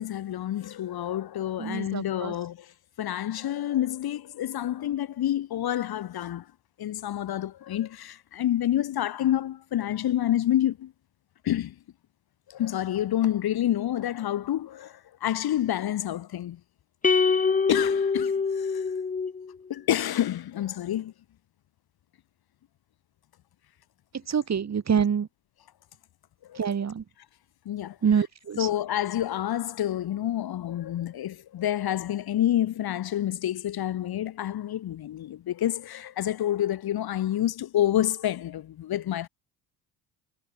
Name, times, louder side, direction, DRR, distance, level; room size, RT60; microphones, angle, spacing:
voice 1, 0.0-2.7 3.0-6.4 6.8-10.9 11.4-11.7 12.5-16.6 17.7-18.8 19.7-21.1 26.5-26.6 27.6-28.0 28.6-39.3, left 12 dB, 50° left, 1.6 m, -28 dB
voice 2, 1.6-2.4 24.1-25.3 26.5-27.0 28.0-28.7, right 7 dB, 30° right, 2.2 m, -26 dB
sound 1, 17.0-19.5, left 5 dB, 15° left, 0.9 m, -24 dB
hypercardioid pair, 70°, 49 cm